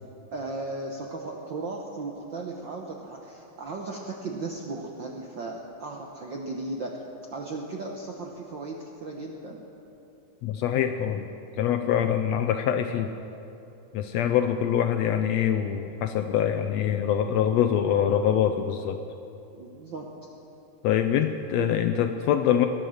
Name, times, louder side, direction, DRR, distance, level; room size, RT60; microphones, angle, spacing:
voice 1, 0.3-7.0 7.3-9.6 16.9-17.8 19.5-20.1 21.5-21.7, right 3 dB, 65° right, 0 dB, 1.1 m, -36 dB
voice 2, 10.4-11.3 11.6-13.1 13.9-19.0 20.8-22.7, left 9 dB, 80° left, 7 dB, 1.6 m, -24 dB
20.0 x 11.0 x 6.4 m, 2.9 s
omnidirectional pair, 3.5 m